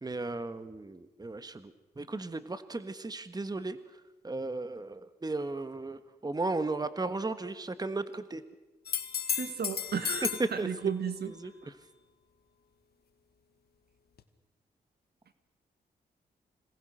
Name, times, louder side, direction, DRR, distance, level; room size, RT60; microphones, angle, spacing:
voice 1, 0.0-3.8 4.2-8.4 10.4-10.7 11.4-11.5, right 3 dB, 25° right, 11 dB, 1.4 m, -35 dB
sound 1, 8.9-10.5 14.2-14.3, left 8 dB, 70° left, 1.8 m, -33 dB
voice 2, 9.3-11.3, right 7 dB, 70° right, 10 dB, 2.0 m, -34 dB
26.5 x 18.5 x 6.4 m, 1.1 s
cardioid pair, 60°, 17 cm